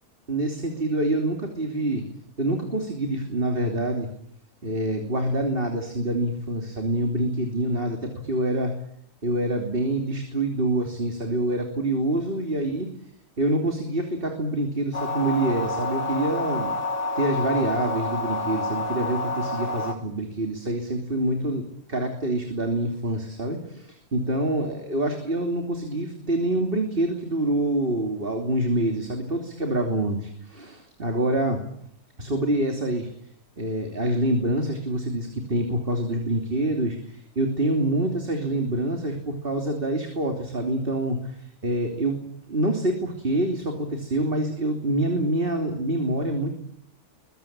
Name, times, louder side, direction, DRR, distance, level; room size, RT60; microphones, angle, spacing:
voice 1, 0.3-2.0 2.4-4.1 4.6-8.8 9.2-12.9 13.4-16.7 17.1-31.6 32.2-33.1 33.6-42.2 42.5-46.5, right 1 dB, 35° right, 4 dB, 3.2 m, -26 dB
sound 1, 14.9-19.9, left 2 dB, 90° left, 3.6 m, -28 dB
23.5 x 21.5 x 8.9 m, 0.70 s
omnidirectional pair, 1.7 m